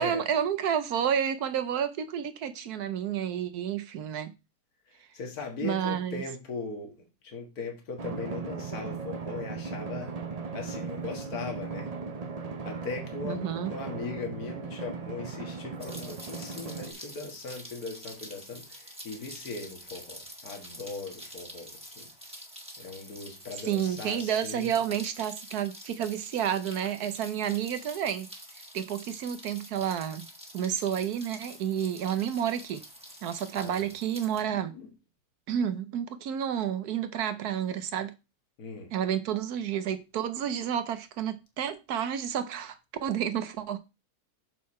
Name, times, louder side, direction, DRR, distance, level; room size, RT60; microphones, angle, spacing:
voice 1, 0.0-4.3 5.6-6.2 13.2-13.7 23.7-28.3 28.7-30.2 30.5-32.8 33.2-34.7 35.5-38.1 38.9-42.8 43.0-43.8, right 9 dB, 75° right, 1.3 m, -30 dB
voice 2, 4.9-10.1 10.5-11.9 12.6-22.1 22.8-24.8 33.5-33.9 34.4-34.9 38.6-38.9, left 4 dB, 65° left, 2.1 m, -39 dB
Drum, 8.0-16.9, right 5 dB, 45° right, 0.5 m, -37 dB
Rain, 15.8-34.4, equal, 5° right, 1.6 m, -47 dB
6.6 x 5.6 x 4.2 m
omnidirectional pair, 1.7 m